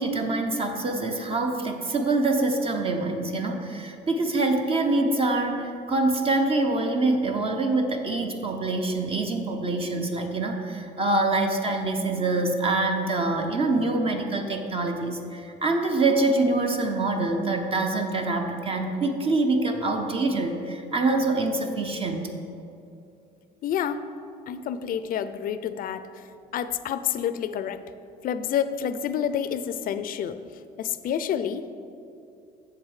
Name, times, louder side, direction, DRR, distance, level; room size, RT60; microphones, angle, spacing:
voice 1, 0.0-22.2, right 2 dB, 35° right, 4 dB, 0.7 m, -25 dB
voice 2, 23.6-24.1 24.5-26.0 26.5-27.8 28.2-30.4 30.8-31.7, left 9 dB, 55° left, 12 dB, 0.5 m, -28 dB
7.3 x 7.0 x 4.8 m, 2.7 s
cardioid pair, 110°, 17 cm